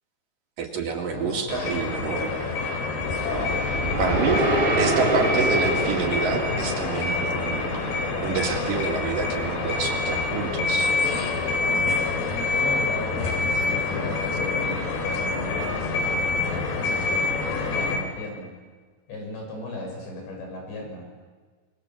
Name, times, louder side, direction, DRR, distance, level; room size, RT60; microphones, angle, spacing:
voice 1, 0.6-2.3 3.3-3.5 4.0-4.4 4.8-7.8 8.2-10.9, right 5 dB, 55° right, 1 dB, 3.6 m, -28 dB
voice 2, 1.1-1.4 4.1-6.1 12.5-18.5 19.1-21.1, left 2 dB, 90° left, 1 dB, 8.9 m, -35 dB
sound 1, 1.5-18.0, left 3 dB, 70° left, 5.1 m, -26 dB
sound 2, 3.1-7.4, right 2 dB, 35° right, 0.9 m, -27 dB
sound 3, 3.3-10.5, left 1 dB, 25° left, 8.7 m, -37 dB
27.0 x 23.0 x 7.4 m, 1.4 s
omnidirectional pair, 5.0 m